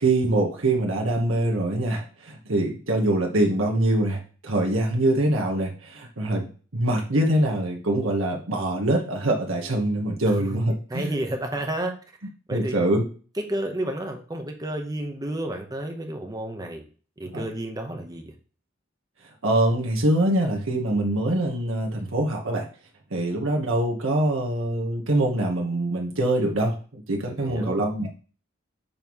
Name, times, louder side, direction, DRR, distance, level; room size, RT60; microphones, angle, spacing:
voice 1, 0.0-11.1 12.5-13.0 17.3-17.4 19.4-22.7 23.1-28.1, right 1 dB, 85° right, 0 dB, 1.3 m, -24 dB
voice 2, 10.2-10.6 10.9-11.9 12.5-12.7 13.4-16.8 17.2-18.3 27.2-27.8, right 1 dB, 20° right, 4 dB, 0.9 m, -31 dB
7.0 x 3.1 x 5.4 m, 0.39 s
head